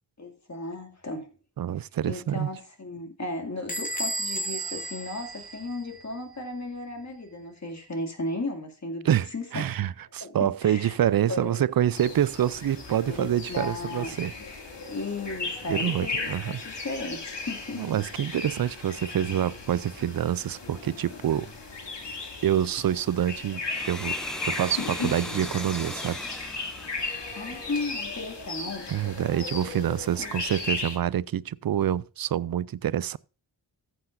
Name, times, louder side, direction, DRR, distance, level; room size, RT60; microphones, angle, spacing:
voice 1, 0.2-1.3 2.0-9.7 10.2-10.9 11.3-11.6 13.1-14.1 14.9-17.8 27.3-28.9 30.2-30.3, left 2 dB, 40° left, 2.5 m, -35 dB
voice 2, 1.6-2.5 9.0-14.3 15.7-16.6 17.8-21.5 22.4-23.6 23.9-24.2 24.5-26.2 28.9-33.2, right 10 dB, 55° right, 0.5 m, -26 dB
Bell / Squeak, 3.7-6.2, right 1 dB, 20° left, 2.5 m, -33 dB
sound 1, 11.9-31.0, left 3 dB, 70° left, 2.5 m, -36 dB
Domestic sounds home sounds, 23.5-28.0, equal, ahead, 0.5 m, -39 dB
14.5 x 7.9 x 2.6 m
cardioid pair, 65°, 43 cm